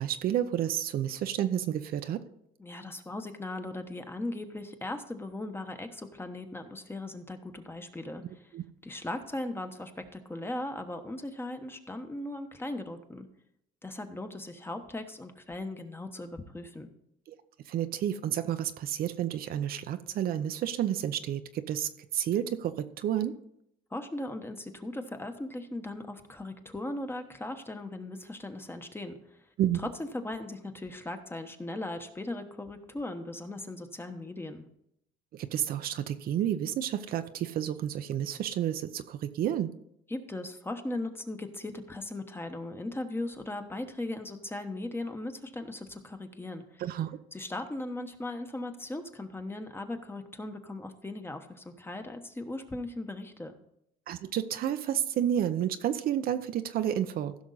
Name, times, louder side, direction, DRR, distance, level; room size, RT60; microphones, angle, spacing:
voice 1, 0.0-2.2 8.5-8.6 17.3-17.4 17.7-23.3 29.6-29.8 35.3-39.7 46.8-47.2 54.1-57.3, right 10 dB, 60° right, 10 dB, 0.7 m, -30 dB
voice 2, 2.6-8.2 8.8-13.3 13.8-16.9 23.9-29.4 29.8-34.6 40.1-46.8 47.3-53.6, left 2 dB, 15° left, 6 dB, 1.1 m, -38 dB
15.5 x 6.2 x 4.0 m, 0.76 s
cardioid pair, 110°, 17 cm